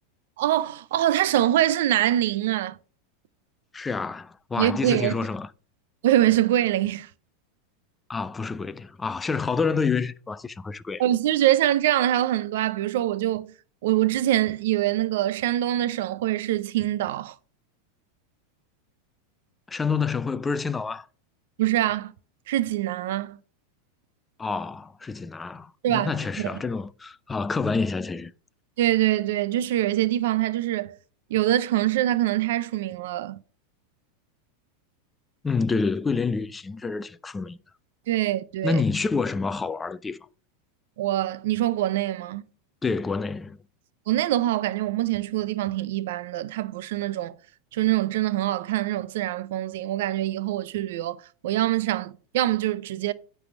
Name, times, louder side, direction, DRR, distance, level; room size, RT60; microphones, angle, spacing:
voice 1, 0.4-2.8 4.6-5.1 6.0-7.1 11.0-13.5 13.8-17.3 21.6-22.1 22.5-23.4 25.8-26.1 26.4-26.5 28.8-30.9 31.3-33.4 38.1-38.8 41.0-42.5 44.1-47.3 47.7-53.1, right 13 dB, 70° right, 0.5 m, -24 dB
voice 2, 3.7-5.5 8.1-11.0 19.7-21.1 24.4-28.3 35.4-37.6 38.6-40.3 42.8-43.6, left 4 dB, 15° left, 0.4 m, -28 dB
9.4 x 3.4 x 6.0 m
hypercardioid pair, 115°, 0 cm